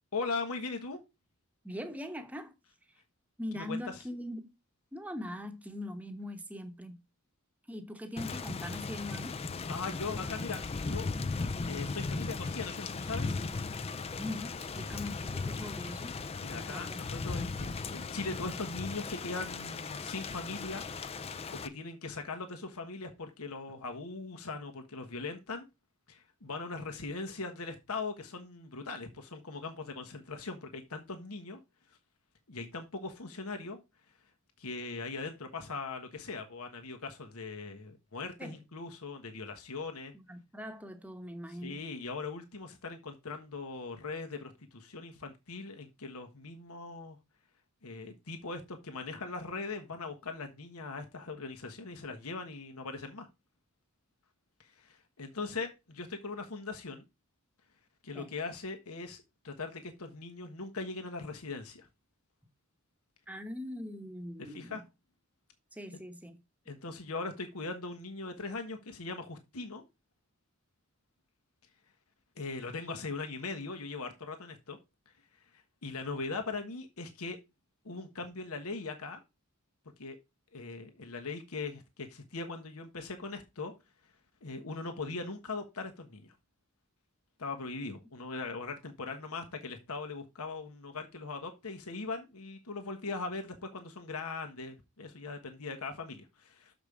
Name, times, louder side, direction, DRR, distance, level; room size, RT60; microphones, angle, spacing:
voice 1, 0.1-1.0 3.5-3.9 9.7-10.6 10.9-11.1 11.7-13.4 16.4-20.8 21.1-25.7 26.1-31.6 32.5-33.8 34.6-40.1 41.5-47.2 47.8-53.3 54.6-57.0 58.0-61.9 64.4-64.8 65.9-66.0 66.7-69.8 72.4-74.8 75.5-77.4 77.8-79.2 80.0-80.2 80.5-83.7 84.4-86.3 87.4-96.7, left 3 dB, 80° left, 1.3 m, -40 dB
voice 2, 1.6-2.5 3.4-4.5 4.9-7.0 7.7-9.4 14.1-16.1 16.6-17.0 38.4-38.6 40.1-41.8 58.1-58.3 63.3-64.8 65.7-66.4, left 1 dB, 5° right, 1.0 m, -41 dB
Thunder / Rain, 8.2-21.7, left 4 dB, 25° left, 0.4 m, -37 dB
7.0 x 5.2 x 4.9 m
head